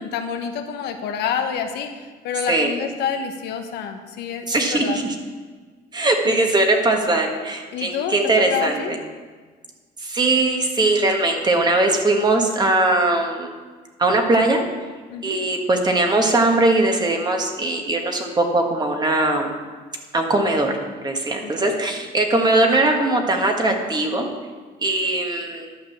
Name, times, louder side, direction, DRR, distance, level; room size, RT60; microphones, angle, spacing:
voice 1, 0.0-5.0 6.3-6.5 7.7-8.1 8.5-9.0 15.1-15.4 21.4-21.8, left 7 dB, 80° left, 6 dB, 1.1 m, -28 dB
voice 2, 4.5-5.1 5.9-9.0 10.0-13.5 14.0-14.6 15.2-19.5 20.1-20.8 21.0-24.3 24.8-25.7, right 2 dB, 25° right, 3 dB, 1.6 m, -20 dB
11.5 x 5.3 x 7.4 m, 1.4 s
cardioid pair, 110°, 17 cm